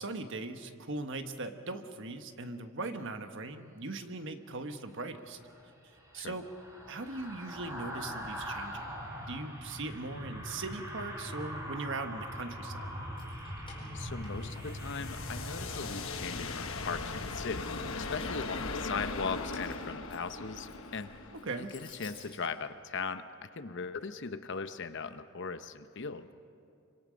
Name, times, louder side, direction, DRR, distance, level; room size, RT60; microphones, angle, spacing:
voice 1, 0.0-5.4 6.1-6.5 6.9-9.0 9.3-12.9 21.3-21.7, right 3 dB, 60° right, 7 dB, 1.3 m, -39 dB
sound 1, 5.3-18.6 19.0-19.2, equal, 15° right, 3.9 m, -42 dB
Keys jangling, 13.0-14.9 15.2-16.8 17.2-18.0 18.8-22.4, left 4 dB, 25° left, 4.6 m, -55 dB
sound 2, 13.4-22.3, left 3 dB, 75° left, 1.2 m, -40 dB
voice 2, 13.9-17.7 18.0-21.1 21.5-26.3, left 5 dB, 60° left, 10 dB, 0.8 m, -39 dB
26.5 x 25.0 x 5.2 m, 2.5 s
head